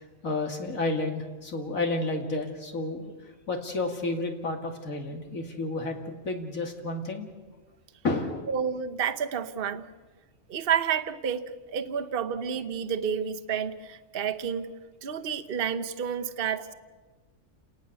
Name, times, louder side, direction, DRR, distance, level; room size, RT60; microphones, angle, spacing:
voice 1, 0.2-3.1 3.5-7.3 8.0-8.5, left 2 dB, 90° left, 3 dB, 2.9 m, -31 dB
voice 2, 8.5-9.8 10.5-11.4 11.7-14.7 15.0-16.7, right 7 dB, 50° right, 7 dB, 1.1 m, -30 dB
28.5 x 19.0 x 6.9 m, 1.3 s
omnidirectional pair, 1.4 m